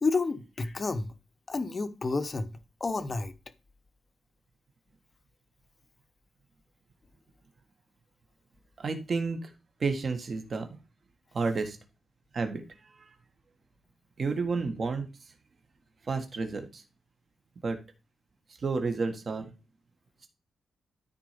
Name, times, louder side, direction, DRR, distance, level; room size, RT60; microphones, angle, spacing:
voice 1, 0.0-1.1 1.5-3.3, left 3 dB, 25° left, 0.9 m, -30 dB
voice 2, 8.8-9.5 9.8-10.7 11.3-11.8 12.3-12.6 13.0-13.1 14.2-15.1 16.1-16.8 17.6-17.8 18.6-19.5, right 4 dB, 35° right, 1.7 m, -30 dB
13.0 x 4.4 x 5.2 m
wide cardioid pair, 175°, 0 cm